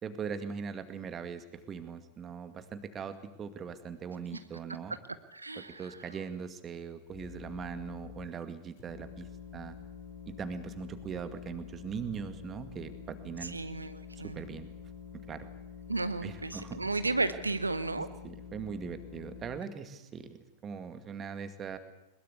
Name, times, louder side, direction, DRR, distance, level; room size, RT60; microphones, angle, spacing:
voice 1, 0.0-5.0 5.6-9.3 9.5-9.8 10.3-13.6 14.2-14.7 15.3-15.5 16.2-16.8 18.0-20.3 20.6-21.8, right 6 dB, 25° right, 10 dB, 2.2 m, -40 dB
voice 2, 5.3-6.0 13.4-14.4 15.9-18.1, right 3 dB, 80° right, 12 dB, 0.8 m, -33 dB
sound 1, 7.1-8.3 8.8-19.6, left 7 dB, 50° left, 7.8 m, -47 dB
21.5 x 21.0 x 8.3 m, 0.91 s
figure-of-eight pair, 90°, 0 cm